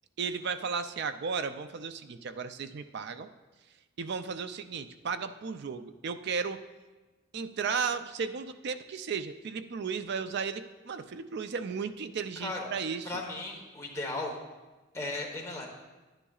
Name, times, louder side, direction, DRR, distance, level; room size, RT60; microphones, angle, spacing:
voice 1, 0.2-3.3 4.0-6.6 7.3-13.1, right 5 dB, 50° right, 10 dB, 0.4 m, -34 dB
voice 2, 12.4-12.7 13.0-14.4 14.9-15.7, left 2 dB, 15° left, -1 dB, 1.1 m, -36 dB
10.5 x 9.9 x 2.4 m, 1.2 s
head